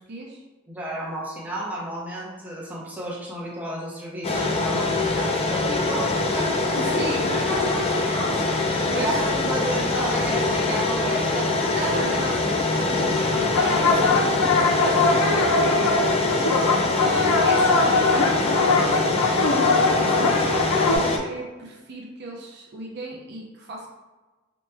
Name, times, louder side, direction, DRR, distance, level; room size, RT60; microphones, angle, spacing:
voice 1, 0.7-6.6 6.8-6.9 8.7-11.9 14.7-16.7, right 1 dB, 10° right, -6 dB, 0.7 m, -32 dB
sound 1, 4.2-21.2, left 3 dB, 30° left, 0.3 m, -24 dB
voice 2, 6.7-9.5 10.2-10.3 11.7-14.7 17.0-23.9, right 1 dB, 50° right, -1 dB, 0.5 m, -34 dB
sound 2, 13.4-21.0, left 3 dB, 85° left, 0.4 m, -22 dB
2.9 x 2.1 x 3.3 m, 1.2 s
head